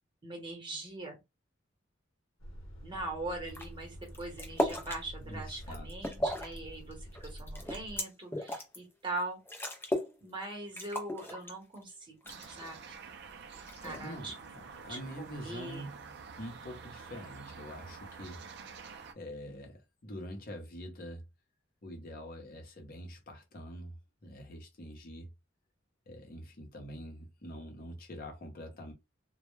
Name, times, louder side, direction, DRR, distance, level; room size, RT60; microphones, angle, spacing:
voice 1, 0.2-1.2 2.8-9.4 10.2-12.9 13.8-15.9, right 2 dB, 25° right, 1.0 m, -41 dB
Truck, 2.4-8.0, equal, 80° left, 0.7 m, -47 dB
sound 1, 3.5-3.7 4.0-5.0 5.5-6.6 6.9-8.8 9.2-9.3 9.5-10.1 10.4-10.5 10.8-11.8 12.3-12.8 13.7-14.2, left 1 dB, 10° left, 0.4 m, -35 dB
voice 2, 5.2-6.1 13.5-18.4 19.1-21.2 21.8-24.0 24.2-25.3 26.1-28.9, equal, 45° left, 0.7 m, -45 dB
sound 2, 12.3-19.1, right 5 dB, 55° right, 0.4 m, -48 dB
2.2 x 2.1 x 3.1 m
head